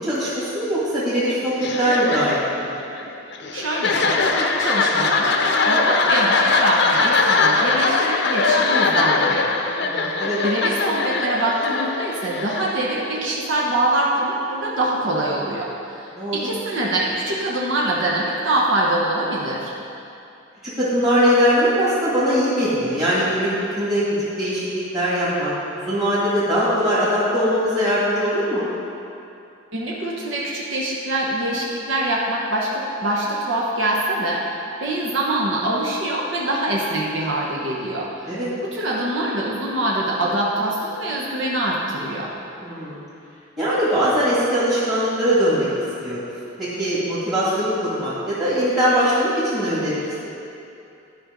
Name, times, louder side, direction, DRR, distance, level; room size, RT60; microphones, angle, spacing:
voice 1, 0.0-2.7 9.8-10.4 16.1-16.4 20.6-23.5 23.8-24.6 24.9-28.6 38.3-38.5 42.6-43.0 43.6-45.7 46.0-46.2 46.6-50.0, equal, 20° right, -11 dB, 2.1 m, -21 dB
Crowd Laughing (Walla), 1.6-13.3, left 3 dB, 60° left, 0.7 m, -21 dB
voice 2, 3.5-9.5 9.9-10.2 10.4-19.7 29.7-38.3 38.6-42.3, right 1 dB, 75° right, -4 dB, 1.1 m, -24 dB
12.0 x 5.2 x 5.2 m, 2.6 s
head